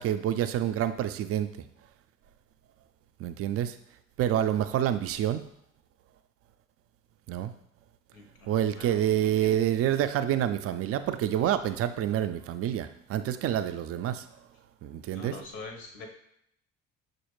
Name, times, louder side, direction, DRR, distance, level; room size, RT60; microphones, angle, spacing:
voice 1, 0.0-1.5 3.2-3.8 4.2-5.5 7.3-7.5 8.5-14.3 14.8-15.4, right 11 dB, 40° right, 11 dB, 0.4 m, -27 dB
voice 2, 8.1-8.5 8.7-8.9 9.2-9.5 15.1-16.1, left 3 dB, 70° left, 3 dB, 1.0 m, -44 dB
6.1 x 2.5 x 3.0 m, 0.73 s
figure-of-eight pair, 50°, 39 cm